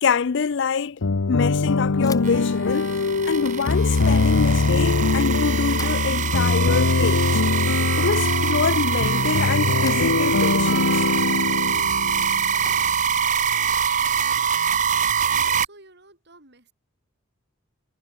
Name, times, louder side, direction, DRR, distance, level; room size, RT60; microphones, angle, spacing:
voice 1, 0.0-1.0 1.3-2.9 3.2-7.4 8.0-11.1, left 5 dB, 55° left, 0.5 m, -25 dB
sound 1, 1.0-12.7, left 3 dB, 90° left, 0.8 m, -22 dB
Bicycle / Thump thud, 2.0-15.1, left 4 dB, 15° left, 2.2 m, -47 dB
sound 2, 2.2-15.6, right 7 dB, 35° right, 0.8 m, -24 dB
voice 2, 15.3-16.7, right 2 dB, 50° right, 7.1 m, -51 dB
head